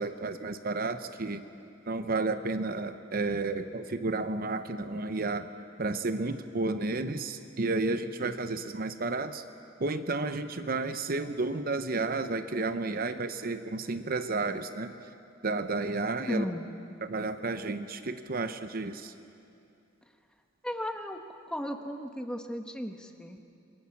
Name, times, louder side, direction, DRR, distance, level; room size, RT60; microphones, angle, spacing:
voice 1, 0.0-1.4 1.9-5.5 5.8-9.4 9.8-14.9 15.4-16.4 17.0-19.1, right 3 dB, 45° right, 10 dB, 0.8 m, -32 dB
voice 2, 16.3-16.7 20.6-21.2 21.5-23.4, equal, 5° left, 4 dB, 1.2 m, -35 dB
27.0 x 23.0 x 7.2 m, 2.7 s
head